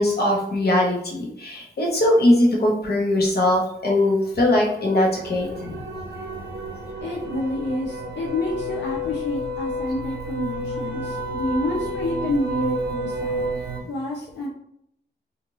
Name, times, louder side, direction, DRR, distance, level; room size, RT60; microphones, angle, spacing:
voice 1, 0.0-5.5, left 1 dB, 60° left, -1 dB, 1.0 m, -20 dB
sound 1, 4.0-13.8, equal, 90° right, 0.5 m, -31 dB
voice 2, 5.5-5.8 7.0-13.5 13.8-14.5, left 1 dB, 85° left, -4 dB, 0.6 m, -28 dB
2.6 x 2.4 x 3.0 m, 0.74 s
cardioid pair, 65°, 18 cm